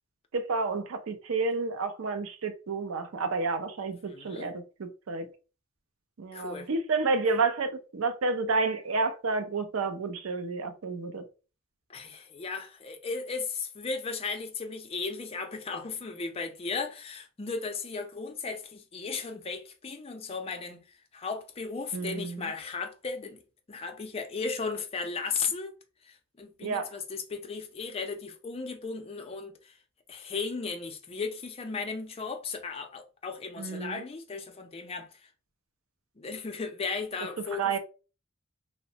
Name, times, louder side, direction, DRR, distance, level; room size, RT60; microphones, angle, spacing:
voice 1, 0.3-5.3 6.2-11.2 21.9-22.5 26.6-26.9 33.6-34.0 37.6-37.8, right 4 dB, 75° right, 0.5 m, -30 dB
voice 2, 4.0-4.5 6.3-6.7 11.9-20.8 21.1-23.4 23.7-25.7 26.1-29.7 30.1-35.1 36.2-37.8, left 4 dB, 30° left, 0.4 m, -36 dB
3.0 x 2.0 x 2.7 m
head